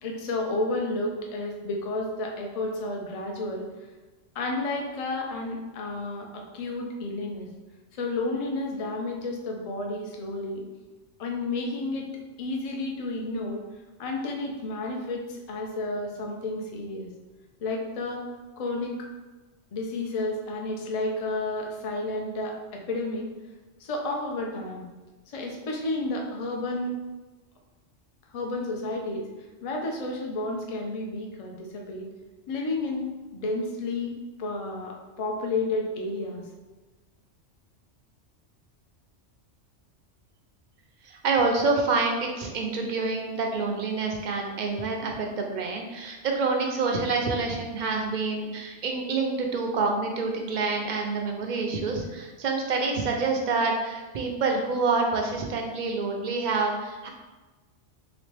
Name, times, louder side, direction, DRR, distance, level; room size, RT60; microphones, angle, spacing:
voice 1, 0.0-3.7 4.3-7.5 7.9-10.6 11.2-12.1 12.4-13.6 14.0-17.1 17.6-18.2 18.6-19.1 19.7-23.3 23.8-24.8 25.3-26.9 28.3-29.3 29.6-32.1 32.5-34.1 34.4-36.4, left 2 dB, 45° left, 1 dB, 0.4 m, -31 dB
voice 2, 41.0-57.1, right 3 dB, 55° right, 2 dB, 0.5 m, -27 dB
3.3 x 3.0 x 3.2 m, 1.2 s
omnidirectional pair, 1.2 m